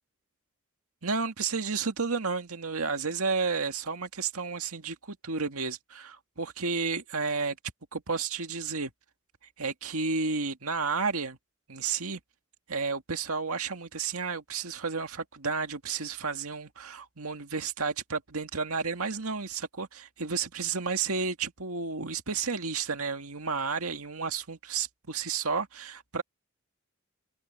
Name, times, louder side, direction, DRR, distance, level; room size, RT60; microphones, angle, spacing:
voice 1, 1.0-7.6 7.9-8.9 9.6-11.4 11.7-12.2 12.7-26.2, right 5 dB, 85° right, 2.0 m, -32 dB
head